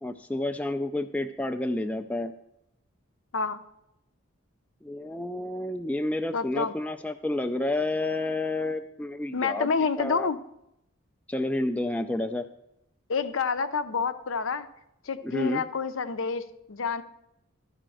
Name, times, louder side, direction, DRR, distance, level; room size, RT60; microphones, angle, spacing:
voice 1, 0.0-2.3 4.8-9.7 10.0-10.3 11.3-12.5 15.2-15.6, left 1 dB, 5° left, 6 dB, 0.3 m, -30 dB
voice 2, 6.3-6.7 9.3-10.4 13.1-14.7 15.1-17.0, left 5 dB, 70° left, 11 dB, 0.6 m, -28 dB
12.0 x 5.0 x 7.7 m, 0.83 s
head